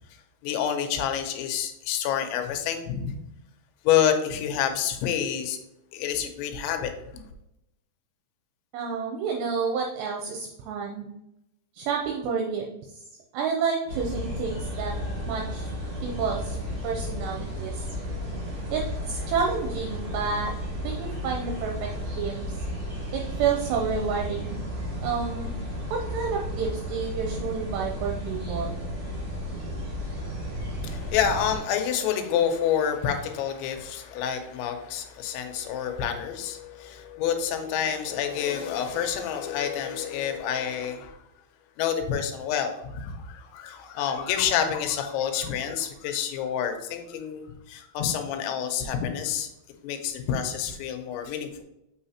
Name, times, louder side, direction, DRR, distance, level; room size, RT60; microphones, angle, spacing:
voice 1, 0.4-3.2 3.8-5.6 5.9-6.9 30.8-41.2 41.8-49.5 49.8-51.6, left 8 dB, 85° left, 6 dB, 3.0 m, -28 dB
voice 2, 8.7-11.1 11.7-13.0 13.3-14.9 15.3-15.7 16.0-16.6 16.8-17.9 18.7-18.8 19.1-20.5 20.8-22.6 23.1-24.6 25.0-25.5 25.9-28.8, right 6 dB, 80° right, 1 dB, 2.6 m, -29 dB
sound 1, 13.9-31.6, equal, 40° right, 2.4 m, -33 dB
7.1 x 5.6 x 2.8 m, 0.84 s
omnidirectional pair, 5.3 m